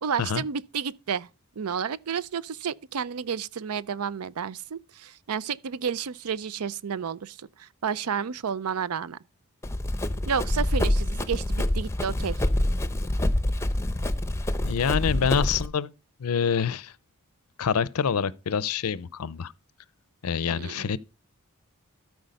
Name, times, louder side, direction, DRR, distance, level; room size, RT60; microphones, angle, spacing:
voice 1, 0.0-1.3 1.6-9.2 10.3-12.5 20.5-20.9, right 7 dB, 85° right, 0.5 m, -31 dB
Run, 9.6-15.7, left 1 dB, 10° left, 0.7 m, -26 dB
voice 2, 14.6-15.9 16.2-16.9 17.6-19.5 20.2-21.0, left 6 dB, 80° left, 0.5 m, -26 dB
13.0 x 4.6 x 5.3 m
head